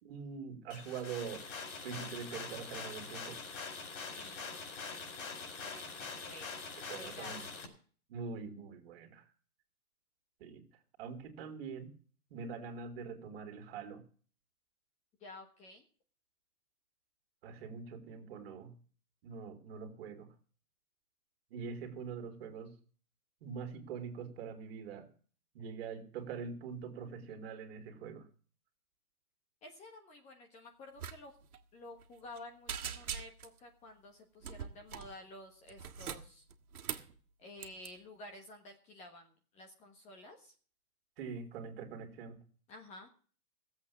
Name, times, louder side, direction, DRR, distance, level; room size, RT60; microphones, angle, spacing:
voice 1, 0.0-1.4 1.8-3.4 6.9-7.5 8.1-9.3 10.4-10.6 11.0-11.9 12.3-14.0 17.4-18.8 19.2-20.3 21.5-22.7 23.4-25.1 25.5-28.3 41.2-42.4, right 6 dB, 40° right, 6 dB, 2.8 m, -44 dB
sound 1, 0.7-7.6, left 4 dB, 55° left, 4.6 m, -44 dB
voice 2, 4.1-7.6 15.2-15.8 29.6-31.3 31.7-36.5 37.4-40.5 42.7-43.1, left 2 dB, 15° left, 4 dB, 1.4 m, -52 dB
sound 2, 31.0-31.2 31.4-31.6 32.0-32.4 32.7-33.6 34.4-35.1 35.7-37.1 37.6-37.9, right 8 dB, 70° right, 2.0 m, -42 dB
15.0 x 8.0 x 7.2 m, 0.43 s
hypercardioid pair, 155°, 44 cm